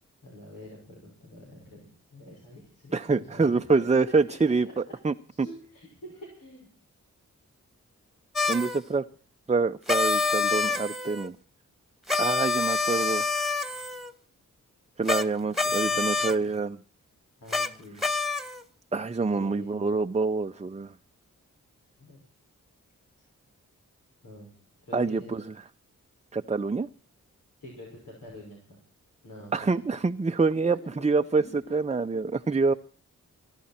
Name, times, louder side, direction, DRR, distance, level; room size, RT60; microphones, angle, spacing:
voice 1, 0.2-4.5 4.9-5.0 5.4-6.7 15.5-15.9 16.2-16.5 17.4-18.1 19.3-20.0 22.0-22.2 24.2-24.5 24.8-25.3 27.6-28.8 29.2-29.9 30.6-30.7 31.0-31.1 31.4-31.8 32.6-32.7, equal, 85° left, -2 dB, 6.1 m, -46 dB
voice 2, 2.9-5.1 8.5-9.1 9.5-11.4 12.2-13.2 15.0-16.8 18.9-20.9 24.9-25.5 26.3-26.9 29.5-32.7, right 4 dB, 20° right, 8 dB, 0.6 m, -26 dB
sound 1, 8.4-8.8 9.9-11.3 12.1-14.1 15.1-15.3 15.5-16.4 17.5-17.7 18.0-18.6, left 3 dB, ahead, 1.8 m, -27 dB
22.5 x 11.5 x 4.4 m, 0.41 s
cardioid pair, 45°, 32 cm